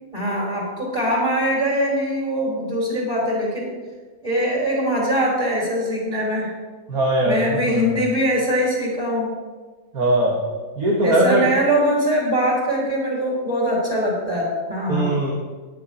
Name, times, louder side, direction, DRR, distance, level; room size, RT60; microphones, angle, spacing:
voice 1, 0.1-3.7 4.2-6.5 7.2-9.3 11.0-15.1, equal, 25° right, -5 dB, 3.6 m, -22 dB
voice 2, 6.9-8.0 9.9-10.4 10.8-11.5 14.9-15.3, right 1 dB, 85° right, -1 dB, 2.0 m, -20 dB
10.5 x 6.9 x 8.5 m, 1.4 s
omnidirectional pair, 1.5 m